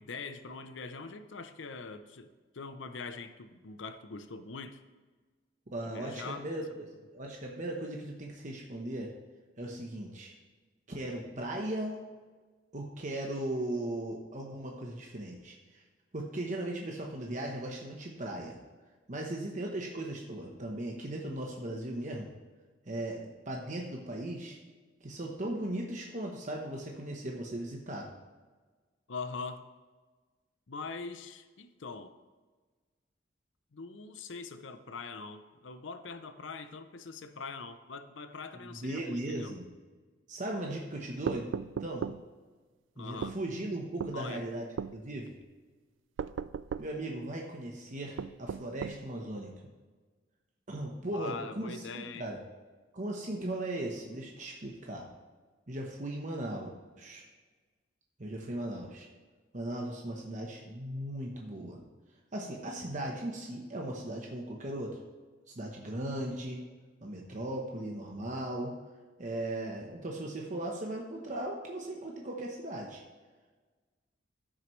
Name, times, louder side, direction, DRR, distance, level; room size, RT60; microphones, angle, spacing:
voice 1, 0.0-4.8 5.9-6.5 29.1-29.6 30.7-32.2 33.7-39.6 43.0-43.4 44.1-44.4 51.1-52.3, left 4 dB, 90° left, 10 dB, 0.6 m, -43 dB
voice 2, 5.7-6.8 7.1-9.1 9.6-10.3 10.9-12.0 12.7-15.8 16.1-18.6 19.1-22.3 22.8-24.6 25.0-28.1 38.5-39.6 40.3-41.5 41.8-42.1 43.0-44.7 44.9-45.3 46.8-49.5 50.7-52.4 52.9-55.1 55.7-57.2 58.2-59.1 59.5-61.8 62.3-65.0 65.5-66.6 67.0-68.8 69.2-73.0, right 1 dB, 40° right, 0 dB, 1.0 m, -37 dB
sound 1, 41.3-42.2 43.2-43.4 44.0-44.2 44.8-45.0 46.2-46.9 48.2-49.0, right 6 dB, 90° right, 0.3 m, -36 dB
15.0 x 6.3 x 3.2 m, 1.4 s
head